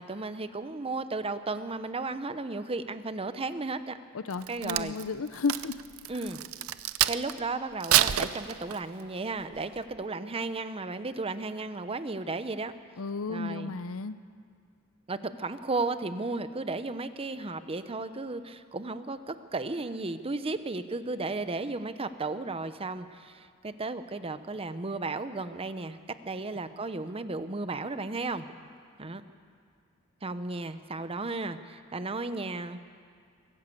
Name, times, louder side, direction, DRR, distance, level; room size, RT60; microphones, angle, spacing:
voice 1, 0.0-4.0 4.5-5.0 6.1-6.4 7.1-12.7 13.3-13.7 15.1-26.0 26.2-28.4 29.0-29.2 30.2-32.8, right 3 dB, 25° right, 11 dB, 0.8 m, -34 dB
voice 2, 4.1-5.8 13.0-14.1, left 4 dB, 70° left, 13 dB, 0.7 m, -33 dB
Crack, 4.3-7.4 7.8-9.0 9.5-9.8, right 12 dB, 75° right, 0.6 m, -28 dB
22.5 x 14.0 x 8.4 m, 2.2 s
head